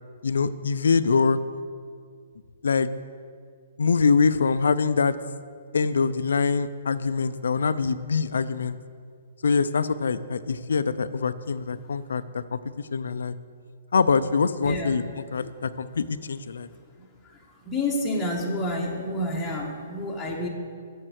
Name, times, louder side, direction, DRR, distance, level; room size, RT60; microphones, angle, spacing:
voice 1, 0.2-1.4 2.6-2.9 3.8-5.2 5.7-8.8 9.4-12.6 12.9-13.3 13.9-15.0 15.3-16.7, left 5 dB, 90° left, 14 dB, 0.5 m, -24 dB
voice 2, 14.6-15.0 17.0-17.1 17.6-20.5, left 1 dB, 5° left, -5 dB, 1.4 m, -29 dB
7.6 x 7.3 x 8.0 m, 2.1 s
hypercardioid pair, 150°, 0 cm